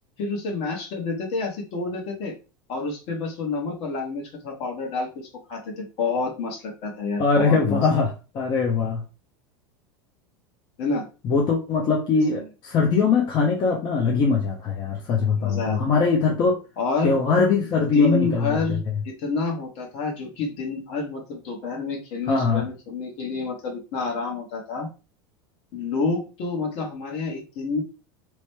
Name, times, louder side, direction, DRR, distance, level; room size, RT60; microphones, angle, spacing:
voice 1, 0.2-2.3 2.7-7.8 10.8-11.1 12.3-12.5 15.4-15.8 16.8-17.1 17.9-18.8 19.2-24.9 25.7-27.8, left 4 dB, 60° left, 0 dB, 1.1 m, -28 dB
voice 2, 7.2-9.0 11.2-16.6 17.0-18.6 22.3-22.6, left 4 dB, 40° left, 0 dB, 0.6 m, -21 dB
3.0 x 2.1 x 3.0 m, 0.31 s
hypercardioid pair, 100°, 12 cm